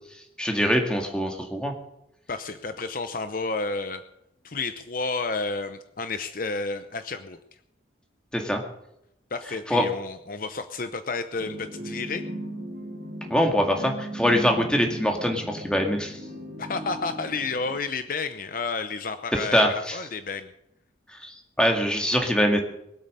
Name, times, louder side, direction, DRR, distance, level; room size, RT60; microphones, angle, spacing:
voice 1, 0.4-1.7 8.3-8.6 9.7-9.8 13.3-16.2 19.5-20.0 21.2-22.6, equal, 5° left, 3 dB, 2.1 m, -23 dB
voice 2, 2.3-4.0 4.4-7.4 9.3-12.2 16.6-20.5, left 4 dB, 45° left, 10 dB, 0.8 m, -31 dB
sound 1, 11.4-17.8, right 1 dB, 50° right, 3.7 m, -37 dB
22.5 x 8.4 x 6.7 m, 0.81 s
head